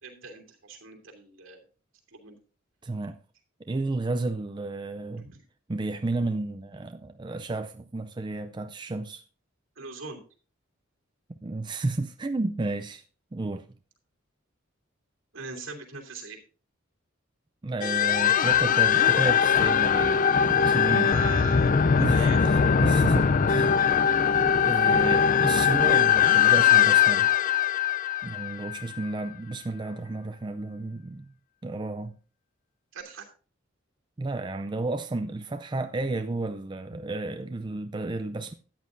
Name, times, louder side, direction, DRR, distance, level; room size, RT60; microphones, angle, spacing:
voice 1, 0.0-1.6 2.1-2.4 5.2-5.4 9.8-10.2 15.3-16.4 21.0-22.4 24.4-24.5 32.9-33.2, right 4 dB, 75° right, 3.0 m, -41 dB
voice 2, 2.8-3.2 3.6-5.3 5.7-9.2 11.4-13.0 13.3-13.7 17.6-21.2 22.0-24.1 24.6-27.3 28.2-31.3 31.6-32.2 34.2-38.5, right 2 dB, 25° right, 0.4 m, -32 dB
sound 1, 17.8-29.0, left 7 dB, 40° left, 0.5 m, -21 dB
13.5 x 9.4 x 2.6 m
head